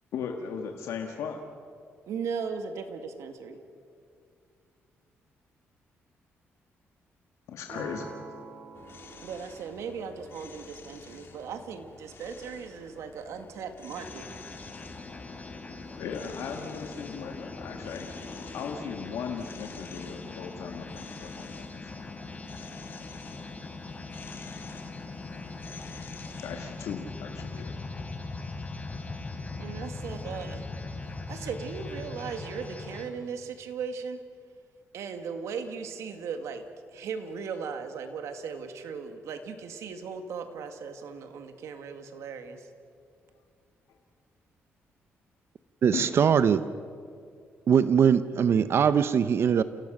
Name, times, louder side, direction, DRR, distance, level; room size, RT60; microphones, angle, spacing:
voice 1, 0.1-1.4 7.5-8.2 15.3-15.4 16.0-18.1 18.5-21.9 26.4-27.9 45.9-46.1, left 6 dB, 85° left, 3 dB, 1.7 m, -37 dB
voice 2, 2.1-3.6 9.2-14.2 29.6-30.7 31.3-34.2 34.9-36.7 36.9-42.7, right 6 dB, 80° right, 7 dB, 2.0 m, -37 dB
sound 1, 7.7-13.7, right 4 dB, 40° right, 3.2 m, -49 dB
sound 2, 8.7-26.9, left 5 dB, 50° left, 2.8 m, -50 dB
sound 3, 13.9-33.0, left 3 dB, 30° left, 3.5 m, -40 dB
voice 3, 45.8-46.6 47.7-49.6, right 7 dB, 55° right, 13 dB, 0.7 m, -21 dB
29.5 x 17.0 x 6.6 m, 2.3 s
cardioid pair, 100°, 5 cm